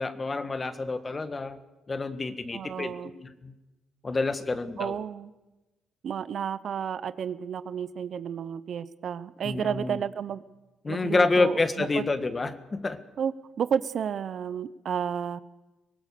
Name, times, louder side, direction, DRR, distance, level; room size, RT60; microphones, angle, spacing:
voice 1, 0.0-1.6 1.9-3.5 4.0-5.0 9.4-10.0 10.8-13.0, left 3 dB, 30° left, 10 dB, 1.6 m, -28 dB
voice 2, 2.5-3.1 4.8-5.3 6.0-10.4 10.9-12.0 13.2-15.4, right 8 dB, 60° right, 15 dB, 0.8 m, -31 dB
23.5 x 17.5 x 6.8 m, 1.1 s
cardioid pair, 90°, 0 cm